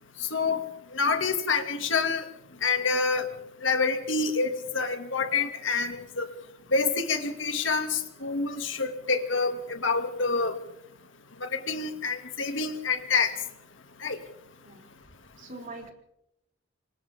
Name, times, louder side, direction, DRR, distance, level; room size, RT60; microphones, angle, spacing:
voice 1, 0.3-0.6 0.9-2.2 2.6-3.3 3.6-6.3 6.7-10.5 11.4-13.3 14.0-14.2, left 4 dB, 85° left, 6 dB, 2.5 m, -27 dB
voice 2, 15.4-15.9, right 2 dB, 45° right, 1 dB, 4.8 m, -43 dB
28.5 x 24.5 x 3.7 m, 0.80 s
head